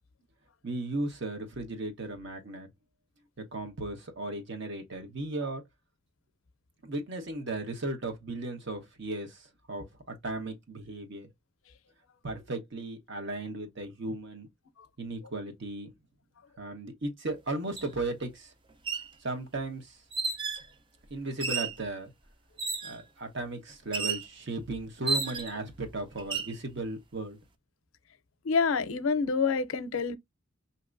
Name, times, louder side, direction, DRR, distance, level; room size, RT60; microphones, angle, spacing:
voice 1, 0.6-2.7 3.4-5.7 6.8-11.3 12.2-14.5 15.0-15.9 16.6-18.5 19.2-20.0 21.1-22.1 22.8-27.4, right 2 dB, 60° right, 1.1 m, -36 dB
sound 1, 17.8-17.9 18.7-19.1 20.1-20.7 21.4-21.8 22.6-23.0 23.9-24.3 25.1-25.6 26.2-26.5, right 4 dB, 25° right, 0.4 m, -32 dB
voice 2, 28.4-30.2, left 5 dB, 85° left, 0.5 m, -27 dB
5.4 x 2.9 x 2.5 m
head